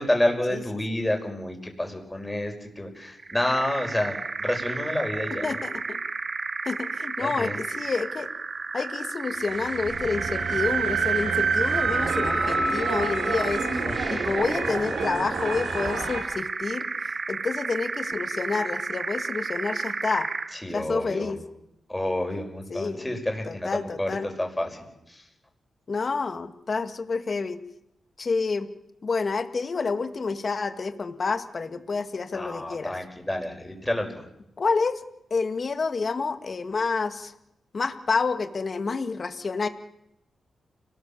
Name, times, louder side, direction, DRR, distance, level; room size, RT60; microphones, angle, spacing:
voice 1, 0.0-5.4 7.2-7.6 13.8-14.3 20.5-21.3 21.9-25.2 32.3-34.2, left 1 dB, 10° left, 3 dB, 5.5 m, -29 dB
sound 1, 3.2-20.6, right 4 dB, 40° right, 1.2 m, -32 dB
voice 2, 5.4-6.0 6.7-8.3 8.7-13.8 14.1-16.9 17.3-20.3 20.7-21.4 22.7-23.1 23.5-24.3 25.9-27.6 28.2-28.7 29.0-32.9 34.6-35.0 35.3-37.3 37.7-39.7, left 4 dB, 45° left, 9 dB, 2.0 m, -29 dB
sound 2, 9.6-16.2, right 4 dB, 80° right, 7.2 m, -27 dB
30.0 x 19.5 x 7.3 m, 0.82 s
cardioid pair, 105°, 0 cm